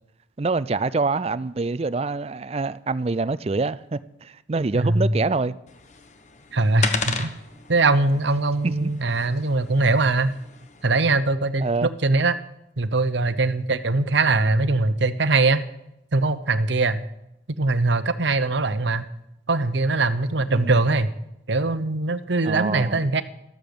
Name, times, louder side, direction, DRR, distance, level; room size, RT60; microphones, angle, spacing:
voice 1, 0.4-5.6 8.6-8.9 11.6-11.9 20.5-20.8 22.4-23.0, right 3 dB, 30° right, 0.4 m, -26 dB
voice 2, 4.7-5.1 6.5-7.3 7.7-10.4 10.8-12.4 12.8-15.6 16.1-17.1 17.6-19.1 19.5-21.2 21.5-23.2, right 3 dB, 70° right, 0.9 m, -21 dB
sound 1, 5.7-11.2, left 4 dB, 40° left, 1.1 m, -35 dB
13.5 x 13.0 x 6.9 m
head